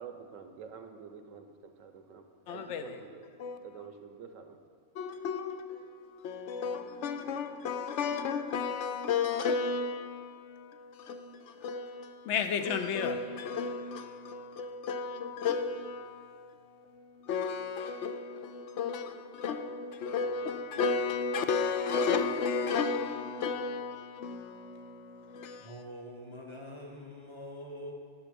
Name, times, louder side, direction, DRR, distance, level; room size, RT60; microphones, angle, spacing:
voice 1, 0.0-4.6, right 6 dB, 75° right, 1.1 m, -48 dB
voice 2, 2.5-3.0 3.4-3.9 4.9-25.8, left 5 dB, 70° left, 0.9 m, -33 dB
voice 3, 25.6-27.9, equal, 25° left, 0.8 m, -44 dB
9.9 x 5.8 x 5.2 m
omnidirectional pair, 1.4 m